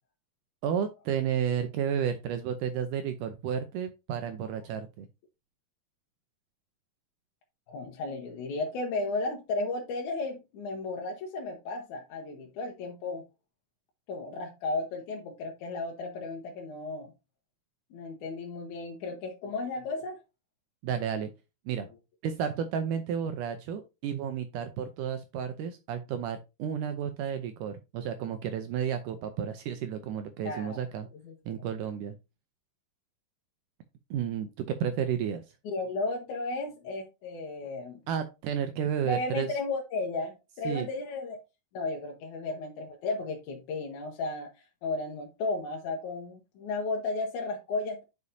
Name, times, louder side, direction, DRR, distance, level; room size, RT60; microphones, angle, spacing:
voice 1, 0.6-5.1 20.8-21.3 21.7-21.9 22.2-31.1 31.5-32.2 34.1-35.4 38.1-39.5 40.7-40.9, right 8 dB, 75° right, 2.0 m, -32 dB
voice 2, 7.7-13.2 14.1-17.1 17.9-20.2 30.4-30.8 31.2-31.6 35.7-38.0 39.0-41.4 41.7-44.5 44.8-48.0, left 3 dB, 70° left, 2.2 m, -34 dB
9.6 x 5.4 x 2.7 m
omnidirectional pair, 4.2 m